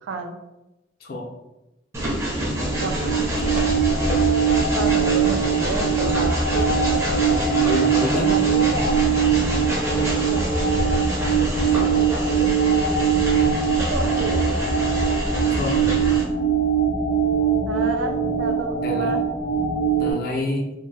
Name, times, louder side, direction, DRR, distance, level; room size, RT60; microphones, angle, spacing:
voice 1, 0.0-0.4 2.8-3.0 4.7-7.1 8.1-9.0 9.8-10.4 11.8-12.4 13.9-14.4 17.7-19.3, right 4 dB, 85° right, 5 dB, 0.3 m, -30 dB
Train, 1.9-16.2, equal, 15° right, 0.4 m, -26 dB
sound 1, 2.5-20.1, right 6 dB, 50° right, 0.7 m, -22 dB
voice 2, 7.5-8.3 15.6-15.8 18.8-19.2 20.0-20.7, left 2 dB, 50° left, 1 dB, 0.4 m, -27 dB
2.0 x 2.0 x 3.0 m, 0.98 s
head